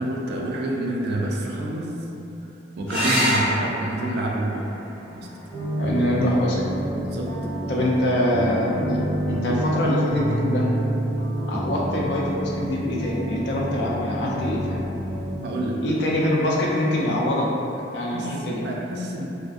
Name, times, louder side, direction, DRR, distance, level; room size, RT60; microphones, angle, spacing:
voice 1, 0.0-1.9 2.8-4.7 5.1-5.3 7.0-7.3 15.4-15.8 18.1-19.2, right 1 dB, 55° right, -2 dB, 0.3 m, -28 dB
sound 1, 2.9-7.9 9.8-10.4 13.9-14.0 14.3-14.4, equal, 5° left, 0.8 m, -29 dB
sound 2, 5.5-15.4, equal, 30° left, 1.1 m, -28 dB
voice 2, 5.8-6.6 7.7-9.0 9.3-10.7 11.5-14.8 15.8-17.5 17.9-18.6, left 1 dB, 60° left, -4 dB, 0.4 m, -24 dB
2.4 x 2.4 x 2.3 m, 2.9 s
head